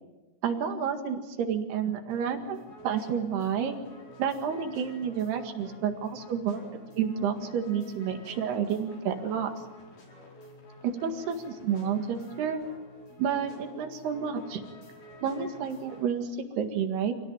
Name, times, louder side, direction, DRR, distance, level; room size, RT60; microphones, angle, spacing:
voice 1, 0.4-3.7 4.2-6.6 6.9-9.5 10.8-12.6 13.2-14.6 15.2-17.1, right 7 dB, 75° right, 5 dB, 3.9 m, -30 dB
sound 1, 2.1-16.1, left 1 dB, 50° left, 6.1 m, -50 dB
27.0 x 17.5 x 9.1 m, 1.2 s
omnidirectional pair, 4.9 m